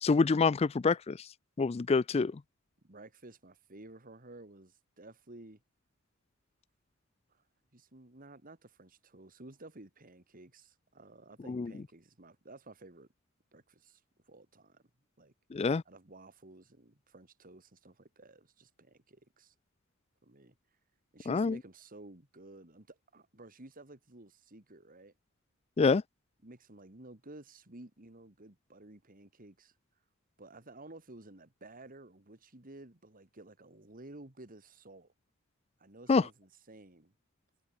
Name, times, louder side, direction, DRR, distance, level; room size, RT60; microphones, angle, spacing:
voice 1, 0.0-1.3 1.6-2.4 11.5-11.7 15.5-15.8 21.3-21.6 25.8-26.0 36.1-36.2, left 4 dB, 30° left, 0.4 m, -26 dB
voice 2, 2.8-5.6 7.3-7.4 7.7-13.1 13.5-14.8 15.2-15.3 15.9-19.5 20.2-20.6 21.1-25.1 26.4-29.7 30.4-35.1 35.8-37.1, right 2 dB, 40° right, 2.3 m, -53 dB
head